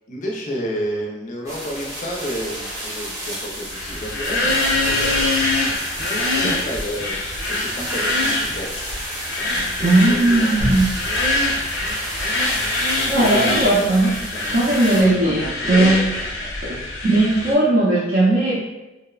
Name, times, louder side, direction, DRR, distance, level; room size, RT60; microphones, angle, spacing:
voice 1, 0.1-5.4 6.1-7.2 7.5-8.8 9.3-10.6 11.5-11.6 13.0-13.8 14.2-14.5 14.9-16.5, equal, 40° left, -1 dB, 0.4 m, -31 dB
sound 1, 1.5-15.0, right 1 dB, 15° right, 0.8 m, -32 dB
sound 2, 3.7-17.5, left 2 dB, 85° left, 0.6 m, -24 dB
voice 2, 9.8-10.8 13.1-14.1 14.5-16.1 17.0-18.6, right 2 dB, 55° right, -7 dB, 0.5 m, -17 dB
sound 3, 10.6-13.4, equal, 90° right, 0.9 m, -31 dB
2.9 x 2.0 x 2.3 m, 1.0 s
head